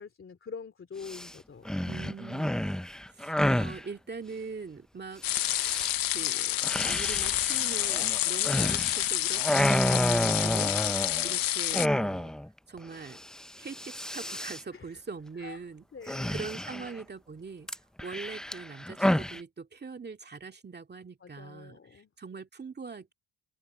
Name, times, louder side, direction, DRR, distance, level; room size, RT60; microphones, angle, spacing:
voice 1, 0.0-1.7 14.7-15.0 15.4-15.6 15.9-16.9 21.2-22.1, left 6 dB, 30° left, 2.9 m, -45 dB
sound 1, 1.0-1.3 1.7-3.8 5.3-5.9 6.6-9.1 9.4-11.3 11.7-12.5 12.8-12.9 13.1-13.4 13.7-14.6 16.1-17.0 17.7-19.4, left 1 dB, ahead, 0.4 m, -30 dB
voice 2, 1.8-2.7 3.1-5.2 6.1-10.8 11.2-12.3 12.7-13.2 13.6-17.7 18.0-23.1, right 4 dB, 25° right, 2.3 m, -42 dB
sound 2, 5.2-11.9, left 14 dB, 60° left, 0.7 m, -29 dB
open air
cardioid pair, 115°, 39 cm